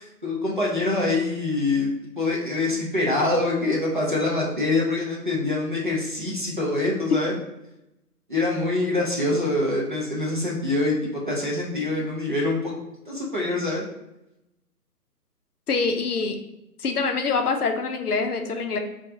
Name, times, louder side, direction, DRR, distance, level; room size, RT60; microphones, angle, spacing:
voice 1, 0.0-1.9 2.2-7.3 8.3-12.7 13.1-13.8, left 2 dB, 35° right, -4 dB, 0.4 m, -25 dB
voice 2, 15.7-16.4 16.8-18.8, left 4 dB, 70° left, 5 dB, 0.6 m, -25 dB
3.6 x 2.3 x 2.7 m, 0.89 s
figure-of-eight pair, 140°, 47 cm